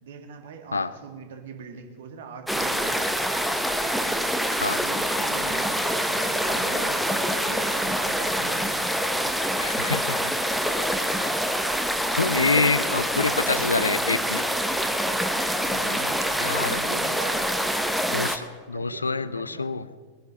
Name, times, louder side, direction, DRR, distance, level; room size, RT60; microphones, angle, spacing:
voice 1, 0.0-3.2 4.7-8.7 9.3-9.4 13.4-13.6 15.6-17.6 18.7-19.7, right 5 dB, 60° right, 5 dB, 2.0 m, -41 dB
sound 1, 2.5-18.4, equal, ahead, 1.0 m, -26 dB
voice 2, 9.6-10.3 12.2-14.5 15.8-16.1 16.4-16.8 18.1-19.9, left 4 dB, 80° left, 16 dB, 0.5 m, -26 dB
20.5 x 10.5 x 5.4 m, 1.6 s
figure-of-eight pair, 90°, 0 cm